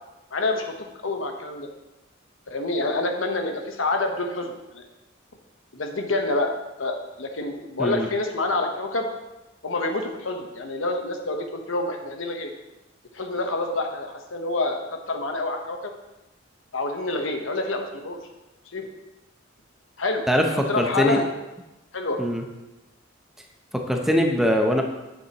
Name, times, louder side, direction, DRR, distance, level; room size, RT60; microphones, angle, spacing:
voice 1, 0.3-1.7 2.5-4.9 5.7-6.5 6.8-9.1 9.6-12.5 13.1-15.9 16.7-18.2 18.7-18.9 20.0-21.2 21.9-22.2, left 2 dB, 85° left, 4 dB, 1.0 m, -27 dB
voice 2, 20.3-21.2 22.2-22.4 23.7-24.8, equal, ahead, 2 dB, 0.7 m, -22 dB
9.4 x 7.8 x 3.0 m, 1.0 s
head